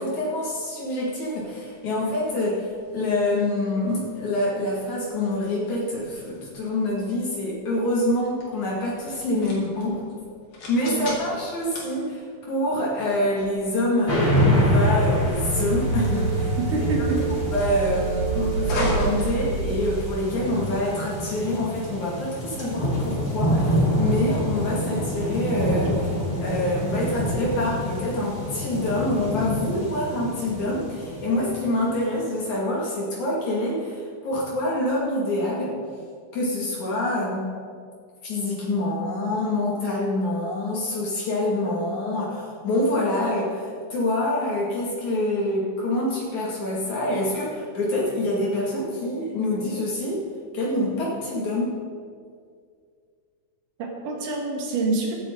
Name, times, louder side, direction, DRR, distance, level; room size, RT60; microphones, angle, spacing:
voice 1, 0.0-10.1 10.7-16.6 17.5-35.8 36.3-37.5 38.2-50.3 50.5-51.8, left 1 dB, 65° left, -5 dB, 3.6 m, -26 dB
sound 1, 0.8-20.2, equal, 80° left, 4.4 m, -37 dB
sound 2, 14.1-31.9, equal, 15° left, 3.3 m, -26 dB
sound 3, 15.2-20.2, right 4 dB, 60° right, 1.4 m, -27 dB
voice 2, 16.6-17.3 22.6-22.7 53.8-55.1, right 3 dB, 80° right, 0 dB, 3.4 m, -26 dB
17.0 x 13.5 x 3.9 m, 2.1 s
omnidirectional pair, 3.6 m